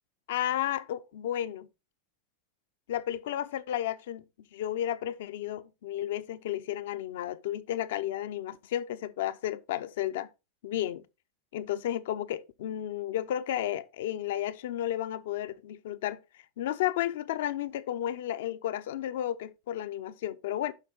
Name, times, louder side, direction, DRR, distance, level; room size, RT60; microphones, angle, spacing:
voice 1, 0.3-1.7 2.9-4.2 4.5-10.3 10.6-11.0 11.5-16.2 16.6-20.7, left 12 dB, 75° left, 0.6 m, -32 dB
8.1 x 5.5 x 4.0 m
hypercardioid pair, 110°, 0 cm